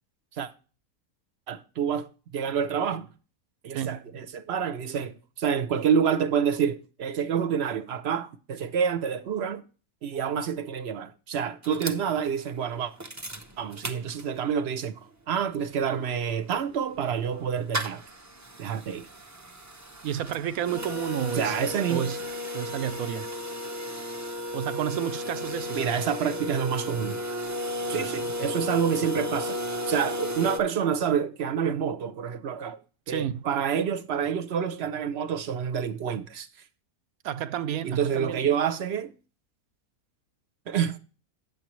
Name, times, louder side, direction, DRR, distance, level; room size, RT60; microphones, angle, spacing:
voice 1, 1.5-2.1 2.3-3.1 3.6-9.6 10.0-12.9 13.6-15.0 15.3-18.0 18.6-19.1 21.4-22.1 25.7-27.2 27.9-29.6 29.9-32.8 33.1-36.5 37.8-39.1 40.7-41.0, right 7 dB, 55° right, 0.8 m, -28 dB
sound 1, 11.6-14.6 15.0-15.1 15.3-30.6, left 1 dB, 25° right, 0.3 m, -35 dB
voice 2, 20.0-21.6 21.9-22.2 22.5-23.3 24.5-25.8 27.9-28.1 33.1-33.4 37.2-38.5, right 10 dB, 80° right, 1.0 m, -31 dB
9.2 x 7.2 x 3.0 m
omnidirectional pair, 1.6 m